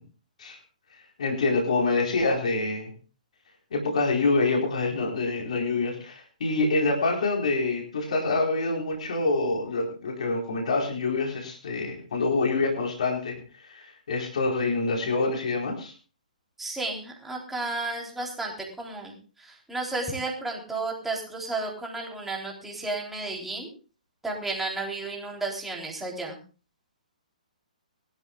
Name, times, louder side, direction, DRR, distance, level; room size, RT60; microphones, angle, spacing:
voice 1, 1.2-2.9 3.7-15.9, left 3 dB, 55° left, 0 dB, 4.5 m, -26 dB
voice 2, 16.6-23.7 24.2-26.4, right 3 dB, 5° right, -1 dB, 3.7 m, -33 dB
21.5 x 13.0 x 2.4 m, 0.36 s
figure-of-eight pair, 125°, 4 cm